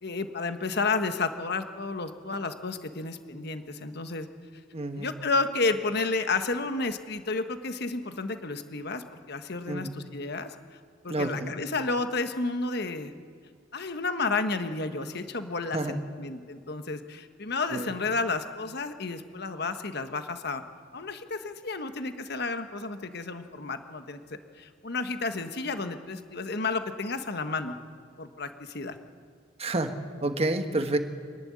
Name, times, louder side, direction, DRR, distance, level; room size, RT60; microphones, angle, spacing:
voice 1, 0.0-4.3 5.0-10.5 11.0-13.1 13.7-20.6 20.9-24.2 24.6-27.7 28.2-28.9, left 3 dB, 60° left, 8 dB, 1.4 m, -31 dB
voice 2, 4.7-5.1 9.7-9.9 11.1-11.6 15.7-16.0 17.7-17.9 29.6-31.0, right 2 dB, 35° right, 6 dB, 1.4 m, -29 dB
25.0 x 11.5 x 9.7 m, 2.2 s
head